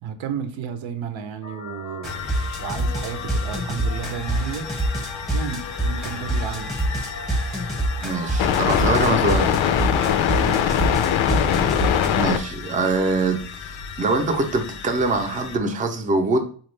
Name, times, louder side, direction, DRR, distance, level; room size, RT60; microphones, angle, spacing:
voice 1, 0.0-2.3 2.6-4.7 5.3-6.7 10.3-10.7, right 7 dB, 85° right, 0.7 m, -32 dB
sound 1, 1.4-10.6, left 4 dB, 30° left, 0.6 m, -38 dB
sound 2, 2.0-12.1, right 1 dB, ahead, 0.8 m, -25 dB
sound 3, 2.1-15.6, left 9 dB, 85° left, 0.5 m, -26 dB
voice 2, 8.0-9.6 12.1-16.4, right 3 dB, 20° right, 0.4 m, -23 dB
4.2 x 2.3 x 3.1 m
cardioid pair, 145°, 45 cm